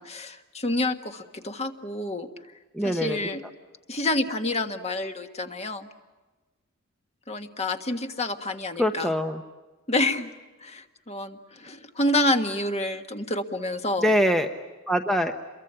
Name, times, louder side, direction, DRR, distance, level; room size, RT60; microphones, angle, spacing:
voice 1, 0.0-2.3 2.8-3.4 3.9-5.9 7.3-9.1 9.9-10.3 10.6-14.1, left 1 dB, 30° left, 6 dB, 1.6 m, -28 dB
voice 2, 2.7-3.2 8.8-9.4 14.0-14.5 14.9-15.3, equal, ahead, 5 dB, 0.9 m, -23 dB
28.5 x 23.0 x 8.9 m, 1.2 s
head